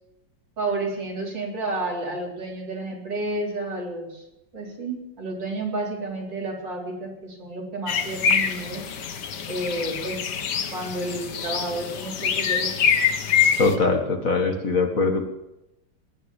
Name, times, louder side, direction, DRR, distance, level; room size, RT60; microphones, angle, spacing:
voice 1, 0.6-4.2 4.5-8.8 9.5-10.2 10.7-13.0, right 2 dB, 75° right, -1 dB, 4.5 m, -31 dB
sound 1, 7.9-13.8, left 7 dB, 65° left, 1.7 m, -25 dB
voice 2, 13.6-15.3, left 3 dB, 45° left, 4 dB, 2.2 m, -22 dB
19.5 x 10.5 x 7.3 m, 0.90 s
omnidirectional pair, 2.0 m